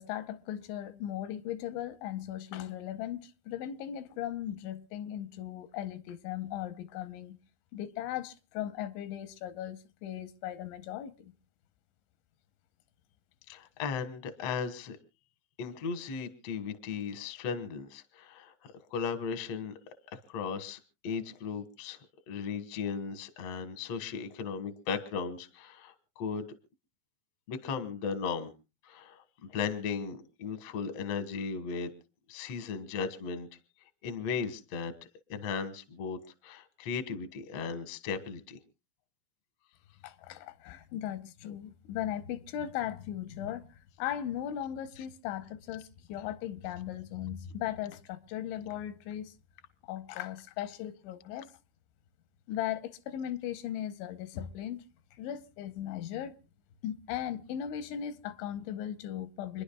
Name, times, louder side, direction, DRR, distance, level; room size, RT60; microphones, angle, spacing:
voice 1, 0.0-7.4 7.7-11.3 40.0-43.6 44.0-49.3 49.8-51.5 52.5-54.8 55.2-56.4 56.8-59.6, left 11 dB, 85° left, 3.2 m, -38 dB
voice 2, 13.5-15.0 15.6-18.5 18.9-19.7 20.1-22.0 22.3-26.5 27.5-28.5 28.9-29.2 29.5-31.9 32.3-33.5 34.0-34.9 35.3-38.6, left 6 dB, 70° left, 1.5 m, -36 dB
29.0 x 10.5 x 2.3 m
omnidirectional pair, 5.2 m